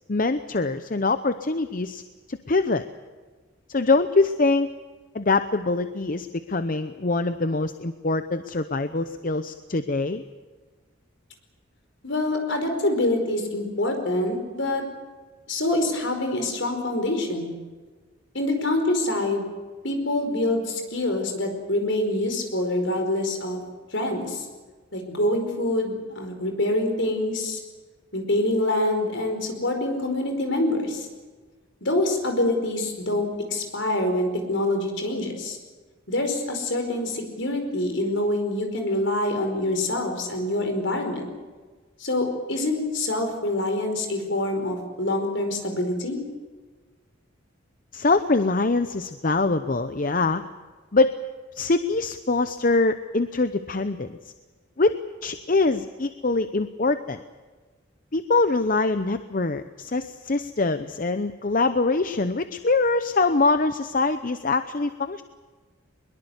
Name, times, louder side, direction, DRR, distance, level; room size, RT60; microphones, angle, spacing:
voice 1, 0.1-2.0 2.3-2.8 3.7-4.7 5.1-10.2 47.9-50.4 50.9-51.1 51.5-54.2 54.8-57.2 58.1-65.2, left 3 dB, 45° left, 10 dB, 0.7 m, -24 dB
voice 2, 12.0-14.8 15.5-17.5 18.3-19.5 19.8-23.6 23.9-24.4 24.9-27.6 28.1-31.1 31.8-35.6 36.1-41.2 42.0-46.2, left 1 dB, 65° left, 5 dB, 5.0 m, -25 dB
22.5 x 22.0 x 8.2 m, 1.4 s
head